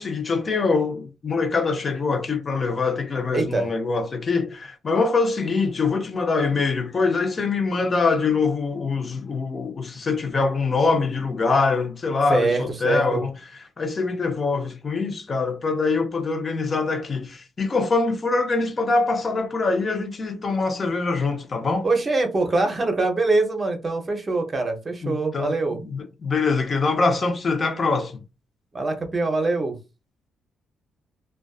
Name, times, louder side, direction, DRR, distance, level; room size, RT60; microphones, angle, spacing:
voice 1, 0.0-13.3 13.8-21.9 25.0-25.5 25.8-28.2, left 4 dB, 40° left, 0.5 m, -24 dB
voice 2, 3.3-3.7 12.3-13.2 21.8-25.8 28.7-29.8, right 3 dB, 30° right, 0.7 m, -23 dB
2.5 x 2.2 x 2.3 m
cardioid pair, 90°, 0 cm